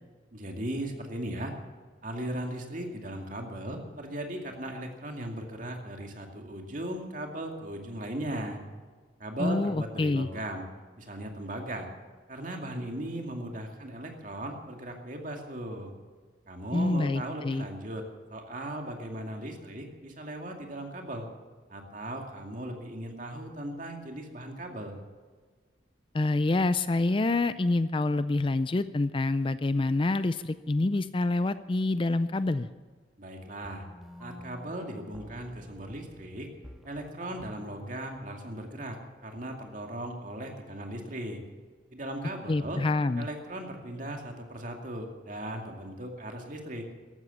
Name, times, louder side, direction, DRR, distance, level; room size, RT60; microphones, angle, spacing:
voice 1, 0.3-1.6 2.0-8.6 9.2-10.6 11.0-11.9 12.3-15.9 16.5-18.0 18.3-21.3 21.7-25.0 33.2-33.9 34.2-36.5 36.8-41.4 41.9-42.8 43.2-46.9, right 1 dB, 45° right, 3 dB, 2.3 m, -37 dB
voice 2, 9.4-10.3 16.7-17.6 26.1-32.7 42.5-43.3, left 2 dB, 30° left, 14 dB, 0.4 m, -27 dB
sound 1, 33.6-39.6, left 1 dB, ahead, 1.7 m, -50 dB
14.5 x 12.5 x 7.1 m, 1.5 s
head